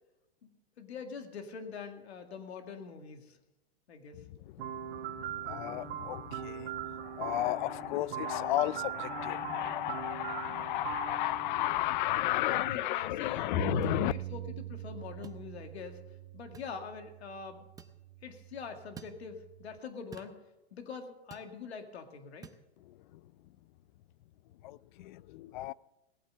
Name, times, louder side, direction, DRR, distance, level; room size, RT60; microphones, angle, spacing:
voice 1, 0.4-3.4 3.9-4.2 12.4-16.0 16.3-17.7 18.2-20.4 20.7-22.5, left 6 dB, 85° left, 2.2 m, -44 dB
sound 1, 4.6-12.5, right 10 dB, 65° right, 1.5 m, -41 dB
voice 2, 5.5-6.7 7.1-14.1 24.6-25.7, left 16 dB, 50° left, 0.5 m, -33 dB
Bass guitar, 13.5-19.8, right 15 dB, 85° right, 0.5 m, -43 dB
sound 2, 13.8-14.0 15.2-15.4 16.5-16.7 17.8-18.0 19.0-19.2 20.1-20.4 21.3-21.5 22.4-22.6, right 6 dB, 10° right, 0.7 m, -50 dB
17.5 x 8.5 x 6.7 m
hypercardioid pair, 140°, 31 cm